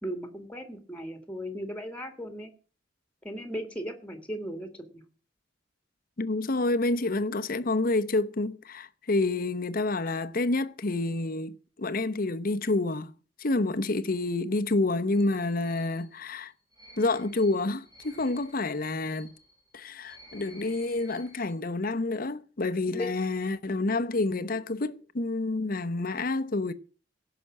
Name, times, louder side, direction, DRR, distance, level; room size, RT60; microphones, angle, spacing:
voice 1, 0.0-2.5 3.2-5.0 22.9-23.1, equal, 5° left, 2.0 m, -37 dB
voice 2, 6.2-13.1 13.4-16.5 17.0-19.3 19.7-26.7, left 2 dB, 50° left, 0.8 m, -28 dB
sound 1, 15.1-21.6, equal, 25° right, 3.5 m, -54 dB
16.5 x 6.0 x 7.4 m
head